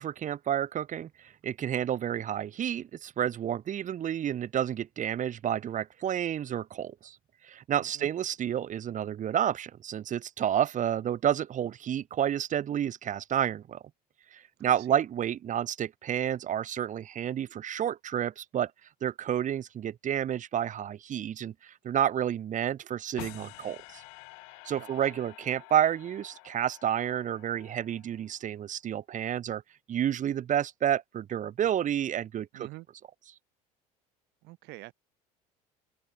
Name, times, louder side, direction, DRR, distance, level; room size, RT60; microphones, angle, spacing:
voice 1, 0.0-7.2 7.4-13.8 14.3-18.7 19.0-24.0 24.6-29.6 29.9-32.7, right 10 dB, 40° right, 2.1 m, -30 dB
voice 2, 7.7-8.1 14.6-15.0 24.8-25.0 32.5-32.9 34.4-34.9, right 21 dB, 60° right, 3.0 m, -47 dB
sound 1, 23.2-28.4, left 37 dB, 70° left, 6.5 m, -49 dB
open air
hypercardioid pair, 70°, 19 cm